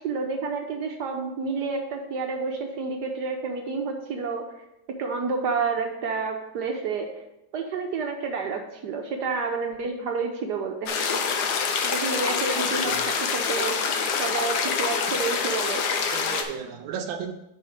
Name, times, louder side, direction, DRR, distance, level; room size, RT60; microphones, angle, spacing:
voice 1, 0.0-4.5 4.9-7.1 7.5-11.0 11.8-13.7 14.2-15.8, right 4 dB, 65° right, 3 dB, 1.2 m, -29 dB
sound 1, 10.9-16.4, left 5 dB, 65° left, 1.2 m, -26 dB
voice 2, 12.6-13.1 16.1-17.3, right 7 dB, 90° right, 3 dB, 1.5 m, -35 dB
5.6 x 4.8 x 6.3 m, 0.87 s
omnidirectional pair, 2.2 m